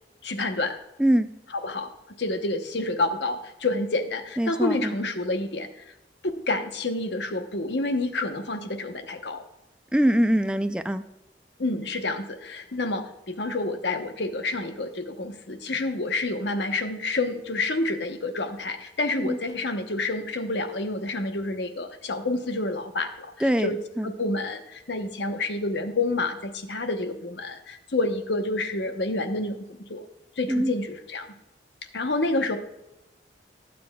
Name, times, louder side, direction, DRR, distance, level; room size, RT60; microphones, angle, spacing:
voice 1, 0.2-0.8 1.6-1.9 2.2-5.7 6.5-9.4 11.6-23.3 23.6-23.8 24.0-30.0 30.4-31.3 31.9-32.6, left 2 dB, 75° left, 7 dB, 1.0 m, -28 dB
voice 2, 4.4-5.0 9.9-11.0 19.2-19.4 23.4-24.1 30.5-30.7, right 1 dB, 5° right, 9 dB, 0.4 m, -23 dB
20.5 x 7.7 x 2.3 m, 0.92 s
head